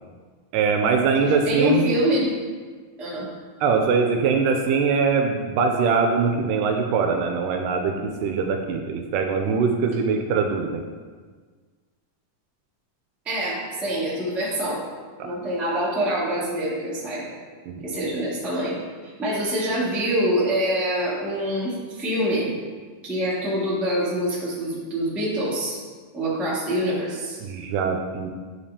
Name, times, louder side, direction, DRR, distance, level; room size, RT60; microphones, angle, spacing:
voice 1, 0.5-2.0 3.6-10.8 15.2-15.4 17.7-17.8 27.4-28.3, right 5 dB, 80° right, 3 dB, 2.0 m, -22 dB
voice 2, 1.4-2.3 3.0-3.3 13.2-14.8 15.2-17.3 17.8-18.8 19.0-22.5 23.0-25.8 26.1-27.4, equal, ahead, -8 dB, 0.4 m, -25 dB
9.9 x 5.1 x 2.8 m, 1.5 s
omnidirectional pair, 4.0 m